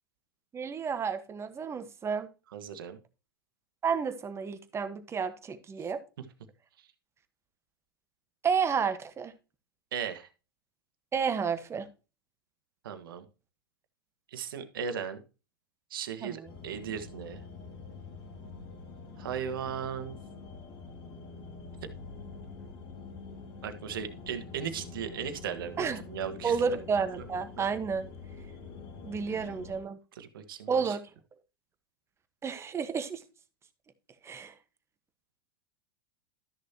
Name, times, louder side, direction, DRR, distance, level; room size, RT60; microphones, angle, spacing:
voice 1, 0.5-2.3 3.8-6.0 8.4-9.3 11.1-11.9 16.2-16.5 25.8-26.0 26.4-28.1 29.0-30.0 30.7-31.0 32.4-33.2 34.2-34.5, right 6 dB, 20° right, 1.3 m, -31 dB
voice 2, 2.5-3.0 9.9-10.3 12.8-13.2 14.3-15.2 15.9-17.4 19.2-20.2 23.6-26.6 27.2-27.3 29.3-29.5 30.1-31.0, right 8 dB, 70° right, 1.6 m, -37 dB
sound 1, 16.5-29.8, left 4 dB, 45° left, 2.6 m, -46 dB
13.0 x 6.5 x 2.9 m
hypercardioid pair, 100°, 12 cm